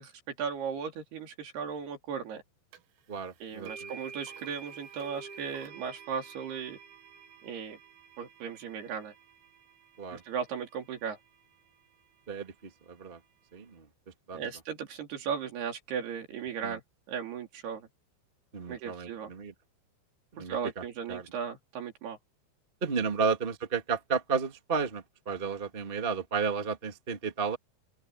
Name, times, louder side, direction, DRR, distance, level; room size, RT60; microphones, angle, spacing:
voice 1, 0.0-2.4 3.4-6.8 7.4-7.8 8.2-9.1 10.1-11.2 14.3-16.8 17.1-17.9 18.7-19.3 20.4-22.2, right 7 dB, 65° right, 5.0 m, -36 dB
sound 1, 2.7-2.8 3.7-11.7, right 6 dB, 85° right, 4.0 m, -49 dB
voice 2, 3.1-3.9 10.0-10.2 12.3-12.5 12.9-13.2 13.5-13.9 14.3-14.4 16.6-16.8 18.5-19.5 20.3-21.2 22.8-27.6, right 5 dB, 35° right, 0.8 m, -32 dB
open air
omnidirectional pair, 5.2 m